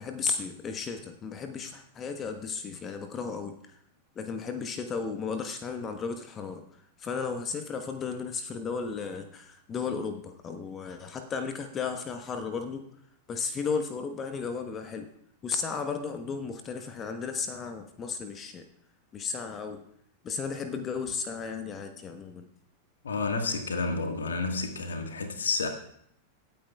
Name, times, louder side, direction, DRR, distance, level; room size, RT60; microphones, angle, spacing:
voice 1, 0.0-3.8 4.2-6.6 7.0-12.9 13.3-15.1 15.4-18.6 19.1-19.8 20.2-22.5, left 5 dB, 25° left, 1.2 m, -34 dB
voice 2, 23.0-25.7, left 3 dB, 70° left, 1.6 m, -30 dB
25.5 x 9.1 x 2.4 m
figure-of-eight pair, 90°, 0 cm